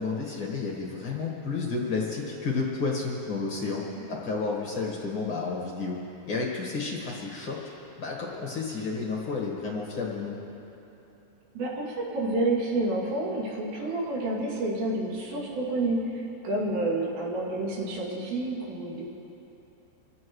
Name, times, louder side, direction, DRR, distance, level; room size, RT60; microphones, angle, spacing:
voice 1, 0.0-3.8 4.1-6.0 6.2-7.6 8.0-10.4, left 4 dB, 65° left, -2 dB, 1.2 m, -31 dB
voice 2, 11.5-19.0, right 2 dB, 85° right, -4 dB, 4.8 m, -29 dB
26.5 x 15.0 x 3.2 m, 3.0 s
omnidirectional pair, 4.9 m